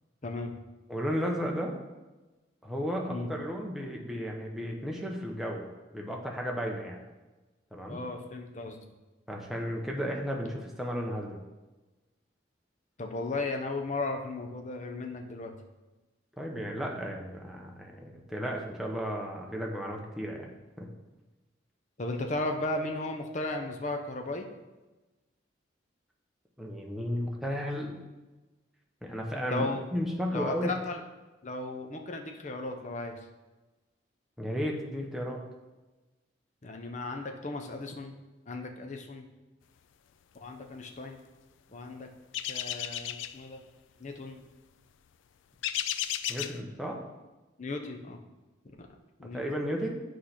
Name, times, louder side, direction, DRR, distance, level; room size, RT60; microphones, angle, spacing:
voice 1, 0.2-0.5 3.1-3.3 7.9-9.0 13.0-15.5 22.0-24.5 29.5-29.8 30.3-31.0 31.4-33.2 36.6-38.1 38.5-39.3 40.4-41.2 41.7-42.1 42.5-43.6 44.0-44.4 47.6-48.2 48.8-48.9 49.2-49.4, left 2 dB, 40° left, 3 dB, 0.7 m, -35 dB
voice 2, 0.9-1.7 2.6-7.0 7.7-8.0 9.3-11.4 16.4-20.5 20.8-20.9 26.6-28.0 29.0-30.7 34.4-35.4 46.3-47.0 49.3-50.0, equal, ahead, -1 dB, 0.8 m, -34 dB
sound 1, 42.3-43.4 45.6-46.6, left 11 dB, 85° left, 0.3 m, -33 dB
8.4 x 3.3 x 5.8 m, 1.1 s
head